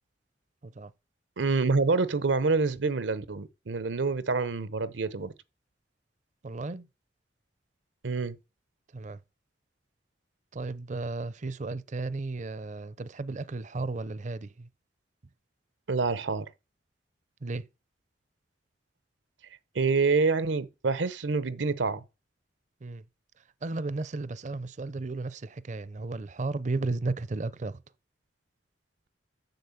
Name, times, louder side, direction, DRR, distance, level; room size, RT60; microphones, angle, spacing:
voice 1, 1.4-5.3 8.0-8.4 15.9-16.5 19.7-22.0, right 4 dB, 85° right, 0.8 m, -27 dB
voice 2, 6.4-6.9 8.9-9.2 10.5-14.7 17.4-17.7 22.8-23.0 23.6-27.8, right 3 dB, 40° right, 0.5 m, -34 dB
7.8 x 7.0 x 7.1 m
head